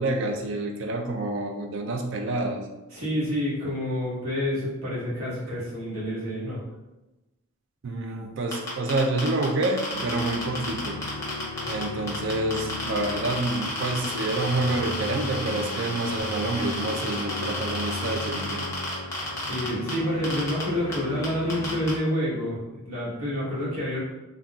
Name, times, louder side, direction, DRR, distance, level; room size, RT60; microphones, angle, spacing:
voice 1, 0.0-2.6 7.8-11.0 11.6-18.6, right 2 dB, 55° right, 4 dB, 0.4 m, -28 dB
voice 2, 2.9-6.6 19.4-24.0, equal, 85° right, -7 dB, 1.2 m, -28 dB
sound 1, 8.5-11.8 12.1-19.9 20.2-20.6 20.9-21.0 21.2-21.9, left 1 dB, 15° left, 0.7 m, -32 dB
sound 2, 9.9-22.0, left 3 dB, 85° left, 0.3 m, -37 dB
3.7 x 2.3 x 2.3 m, 1.1 s
head